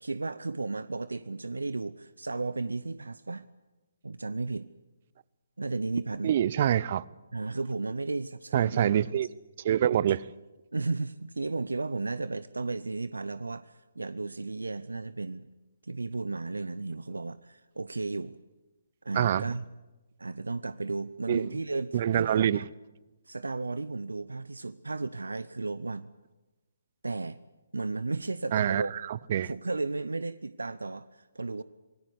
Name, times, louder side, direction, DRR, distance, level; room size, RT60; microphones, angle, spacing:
voice 1, 0.0-3.5 4.0-4.7 5.6-6.3 7.3-9.1 10.7-15.5 15.8-18.4 19.0-19.6 20.2-22.6 23.3-26.1 27.0-27.4 27.7-28.9 29.4-31.6, right 3 dB, 80° right, 0.7 m, -34 dB
voice 2, 6.2-7.0 8.5-9.3 9.6-10.2 19.2-19.5 21.3-21.5 21.9-22.6 28.5-28.8 29.1-29.5, right 10 dB, 45° right, 0.7 m, -25 dB
26.5 x 18.5 x 8.2 m
figure-of-eight pair, 140°, 0 cm